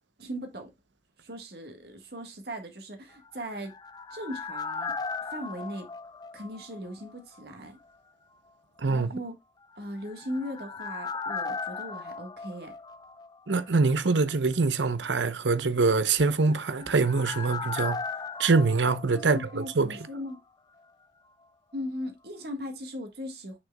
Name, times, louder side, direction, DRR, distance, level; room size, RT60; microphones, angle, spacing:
voice 1, 0.2-0.7 1.2-3.8 4.1-5.0 5.2-5.9 6.3-7.8 8.9-9.3 9.8-12.7 19.2-20.4 21.7-23.6, equal, 60° right, 1.6 m, -38 dB
sound 1, 3.3-7.1 7.4-7.5 9.9-13.6 13.8-13.9 16.2-20.1 20.3-20.4, left 4 dB, 20° left, 0.5 m, -37 dB
voice 2, 8.8-9.1 13.5-18.0 18.4-19.9, right 4 dB, 80° right, 0.8 m, -24 dB
7.7 x 6.4 x 2.3 m
head